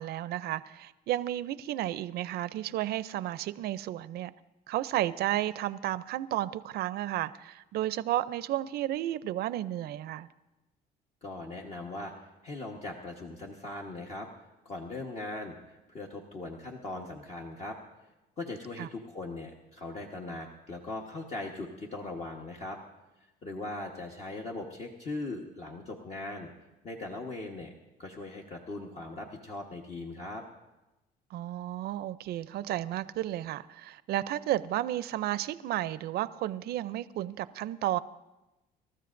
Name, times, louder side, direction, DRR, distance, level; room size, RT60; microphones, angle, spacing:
voice 1, 0.0-4.3 4.7-10.3 18.8-18.9 31.3-38.0, right 13 dB, 70° right, 0.5 m, -32 dB
voice 2, 11.2-14.3 14.6-17.8 18.4-22.8 23.4-26.5 26.8-27.7 28.0-30.4, left 2 dB, 40° left, 1.3 m, -40 dB
26.5 x 13.5 x 2.6 m
cardioid pair, 110°, 17 cm